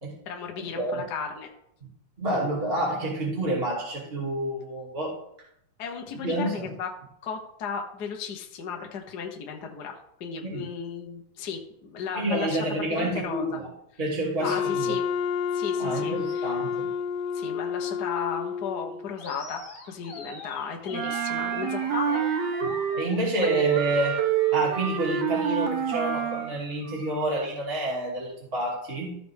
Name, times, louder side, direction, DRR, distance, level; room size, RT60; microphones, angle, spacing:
voice 1, 0.2-1.5 5.8-6.9 7.2-13.6 14.4-15.0 15.5-16.6 17.3-22.2 23.4-23.7, left 6 dB, 60° left, 2 dB, 1.0 m, -35 dB
voice 2, 2.2-5.2 6.2-6.7 10.4-10.6 12.2-13.7 14.0-15.0 15.8-16.9 22.9-24.2 24.5-29.2, right 1 dB, 20° right, -4 dB, 2.4 m, -28 dB
Wind instrument woodwind instrument, 14.4-19.1, left 7 dB, 85° left, 2.2 m, -30 dB
Animal, 19.2-27.3, left 2 dB, 30° left, 2.3 m, -44 dB
Wind instrument woodwind instrument 2, 20.9-23.1 23.4-26.5, right 9 dB, 70° right, 1.8 m, -27 dB
14.5 x 6.0 x 3.6 m, 0.73 s
omnidirectional pair, 3.7 m